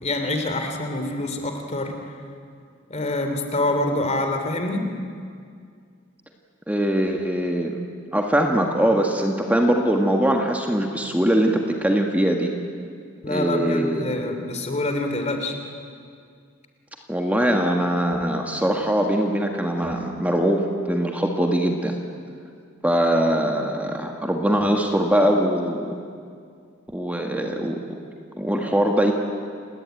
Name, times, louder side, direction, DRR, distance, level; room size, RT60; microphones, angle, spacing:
voice 1, 0.0-1.9 2.9-4.9 13.2-15.6, left 2 dB, 35° left, 5 dB, 2.8 m, -26 dB
voice 2, 6.7-7.8 8.1-12.5 13.3-14.2 17.1-21.9 22.8-26.0 26.9-27.8 28.4-29.1, right 1 dB, 10° right, 2 dB, 1.7 m, -22 dB
30.0 x 18.5 x 9.2 m, 2.2 s
head